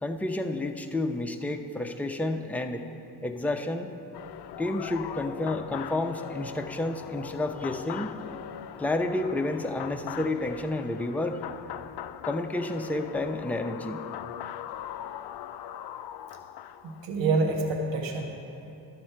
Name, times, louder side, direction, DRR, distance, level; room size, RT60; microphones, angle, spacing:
voice 1, 0.0-2.8 3.2-3.9 4.6-8.2 8.8-11.4 12.2-14.0, left 2 dB, 5° left, 4 dB, 0.7 m, -30 dB
sound 1, 4.1-17.1, left 11 dB, 55° left, 0.5 m, -40 dB
voice 2, 16.8-18.3, right 3 dB, 65° right, 2 dB, 1.3 m, -27 dB
12.0 x 7.5 x 4.5 m, 2.8 s
hypercardioid pair, 55°, 49 cm